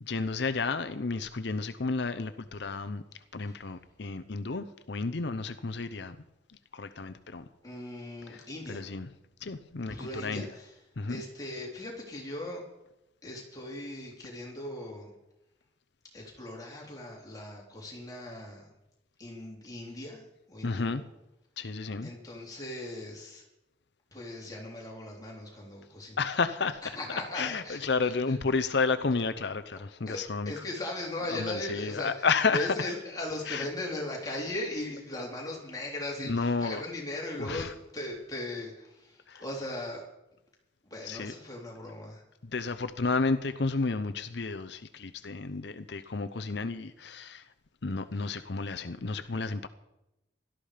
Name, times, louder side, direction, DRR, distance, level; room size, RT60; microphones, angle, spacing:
voice 1, 0.0-3.0 3.3-6.2 6.7-7.4 8.3-8.4 8.7-9.1 9.4-10.5 11.0-11.2 20.6-21.0 21.6-22.1 26.2-26.8 27.3-30.5 31.3-32.7 33.5-33.7 36.2-36.8 37.4-37.7 39.3-39.4 41.0-41.3 42.4-47.5 47.8-49.7, left 4 dB, 65° left, 0.7 m, -31 dB
voice 2, 7.6-8.9 9.8-10.8 11.1-12.6 13.2-15.1 16.1-18.7 19.2-20.2 20.5-21.0 22.0-23.4 24.1-26.2 26.8-28.6 30.1-32.3 32.5-40.1 40.8-42.2 48.1-48.2, left 1 dB, 20° left, 3.7 m, -38 dB
17.5 x 13.0 x 5.1 m
head